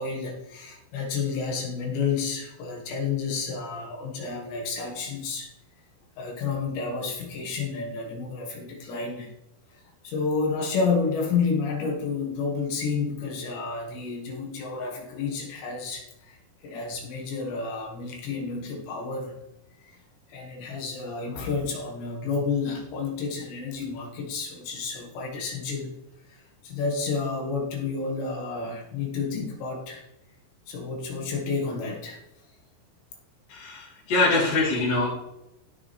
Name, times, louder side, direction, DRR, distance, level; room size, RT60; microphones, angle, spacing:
voice 1, 0.0-5.5 6.2-9.3 10.0-16.4 16.6-19.3 19.8-20.0 20.3-25.9 26.3-30.0 30.7-32.2, left 4 dB, 70° left, 0 dB, 4.2 m, -30 dB
voice 2, 33.5-35.1, left 3 dB, 50° left, -11 dB, 5.2 m, -24 dB
16.0 x 7.1 x 3.5 m, 0.89 s
omnidirectional pair, 5.4 m